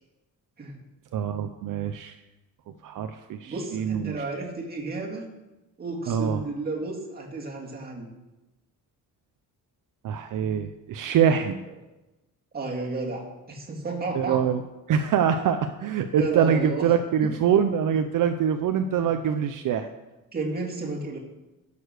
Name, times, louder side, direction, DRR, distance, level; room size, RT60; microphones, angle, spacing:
voice 1, 1.1-2.1 2.8-4.2 6.1-6.4 10.0-11.6 14.1-14.6 14.9-19.9, right 8 dB, 65° right, 7 dB, 0.6 m, -24 dB
voice 2, 3.5-5.3 5.8-8.1 12.5-14.4 16.2-16.8 17.2-17.4 19.0-19.1 20.3-21.2, right 3 dB, 25° right, -1 dB, 2.1 m, -32 dB
11.0 x 6.9 x 6.5 m, 1.0 s
wide cardioid pair, 175°, 34 cm